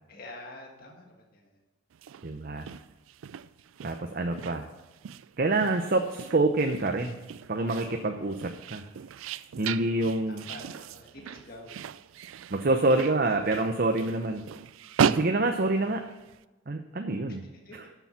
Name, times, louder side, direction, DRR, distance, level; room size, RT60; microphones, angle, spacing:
voice 1, 0.1-1.5 10.3-11.8 17.7-17.8, left 1 dB, 45° left, 1 dB, 1.6 m, -46 dB
sound 1, 1.9-16.4, right 7 dB, 80° right, 0.4 m, -36 dB
voice 2, 2.2-2.6 3.8-4.6 5.4-7.2 7.5-8.8 9.6-10.4 12.5-14.4 15.0-16.0 16.7-17.4 17.7-17.9, right 2 dB, 45° right, 5 dB, 0.7 m, -27 dB
11.5 x 7.0 x 5.7 m, 1.1 s
head